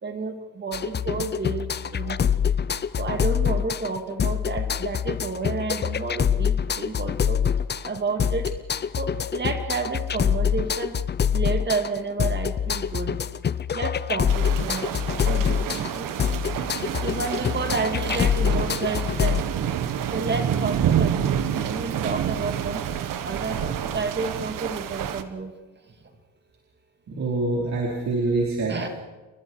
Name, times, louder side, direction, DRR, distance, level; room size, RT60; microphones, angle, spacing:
voice 1, 0.0-2.2 3.0-7.4 7.8-8.5 9.0-10.9 11.3-13.2 13.7-14.9 15.2-16.1 17.0-19.5 20.1-22.8 23.2-25.5 28.7-28.9, right 4 dB, 35° right, 6 dB, 2.4 m, -30 dB
sound 1, 0.7-19.4, left 8 dB, 35° left, 0.6 m, -25 dB
sound 2, 14.3-25.2, right 9 dB, 85° right, 1.4 m, -28 dB
voice 2, 27.1-28.9, right 2 dB, 55° right, -3 dB, 4.7 m, -26 dB
29.0 x 22.0 x 4.8 m, 1.2 s
cardioid pair, 125°, 32 cm